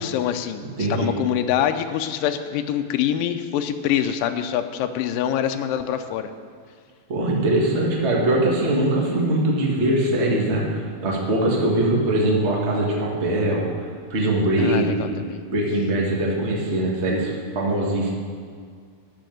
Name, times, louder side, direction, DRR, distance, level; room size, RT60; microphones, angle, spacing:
voice 1, 0.0-6.3 14.6-15.4, left 10 dB, 80° left, 8 dB, 2.0 m, -25 dB
voice 2, 0.8-1.1 7.1-13.7 14.1-15.1 15.5-18.1, right 1 dB, 50° right, -3 dB, 0.7 m, -22 dB
12.5 x 5.3 x 9.1 m, 2.1 s
omnidirectional pair, 4.5 m